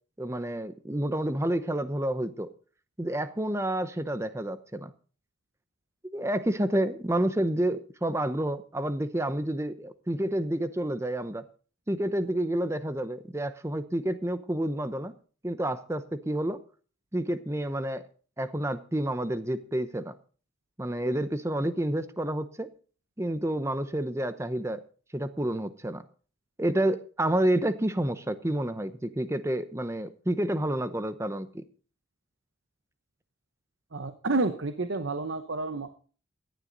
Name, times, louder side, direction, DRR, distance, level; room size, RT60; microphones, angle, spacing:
voice 1, 0.2-2.5 3.0-4.9 6.1-11.4 11.9-15.1 15.4-16.6 17.1-18.0 18.4-20.1 20.8-22.7 23.2-24.8 25.1-26.0 26.6-31.6, right 1 dB, 15° right, 12 dB, 0.8 m, -29 dB
voice 2, 33.9-35.9, right 2 dB, 65° right, 9 dB, 0.9 m, -30 dB
17.0 x 11.5 x 4.0 m, 0.40 s
head